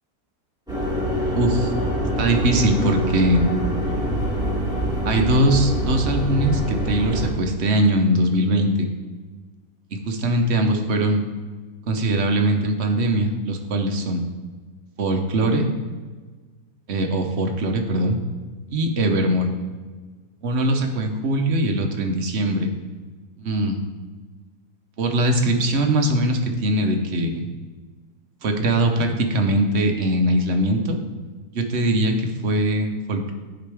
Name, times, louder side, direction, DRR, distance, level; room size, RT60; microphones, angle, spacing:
sound 1, 0.7-7.3, equal, 5° right, 2.2 m, -24 dB
voice 1, 1.3-1.7 2.2-3.5 5.0-8.9 10.1-11.2 11.9-14.2 15.0-15.7 16.9-18.2 18.7-19.5 20.4-22.7 23.4-23.8 25.0-27.4 28.4-31.0 31.5-33.3, right 1 dB, 50° right, 4 dB, 0.9 m, -21 dB
10.5 x 5.1 x 3.4 m, 1.4 s
omnidirectional pair, 1.7 m